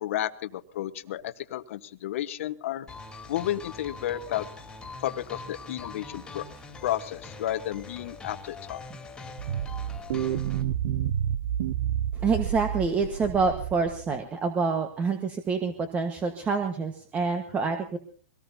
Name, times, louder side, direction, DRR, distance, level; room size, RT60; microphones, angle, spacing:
voice 1, 0.0-2.9 3.3-4.5 5.0-6.4 6.8-8.8, left 13 dB, 60° left, 11 dB, 1.2 m, -32 dB
sound 1, 2.9-10.6, left 3 dB, 10° left, 2.9 m, -43 dB
sound 2, 9.4-14.1, right 10 dB, 60° right, 0.7 m, -29 dB
voice 2, 12.1-18.0, right 4 dB, 20° right, 6 dB, 1.3 m, -27 dB
24.0 x 18.0 x 2.8 m, 0.43 s
hypercardioid pair, 150°, 8 cm